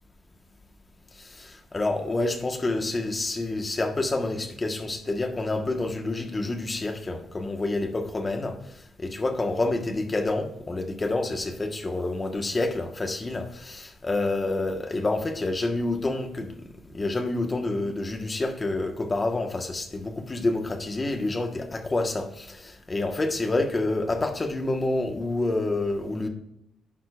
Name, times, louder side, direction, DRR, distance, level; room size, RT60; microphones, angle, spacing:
voice 1, 1.2-16.5 16.9-26.3, left 2 dB, 25° left, 5 dB, 1.3 m, -28 dB
11.5 x 9.1 x 2.5 m, 0.78 s
cardioid pair, 90°, 0 cm